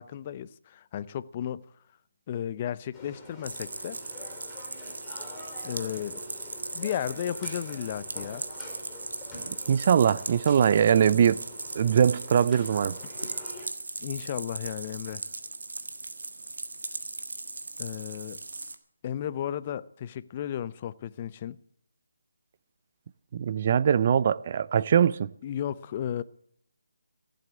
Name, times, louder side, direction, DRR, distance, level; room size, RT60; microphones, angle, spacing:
voice 1, 0.0-1.6 2.3-4.0 5.6-6.2 6.7-8.4 14.0-15.2 17.8-18.4 19.0-21.6 25.4-26.2, left 10 dB, 30° left, 0.6 m, -34 dB
sound 1, 2.9-13.7, left 2 dB, 10° left, 4.3 m, -46 dB
sound 2, 3.4-18.8, right 3 dB, 75° right, 1.6 m, -38 dB
voice 2, 9.5-11.4 11.7-13.0 23.3-25.3, right 8 dB, 40° right, 0.5 m, -22 dB
15.5 x 7.8 x 9.5 m
figure-of-eight pair, 155°, 0 cm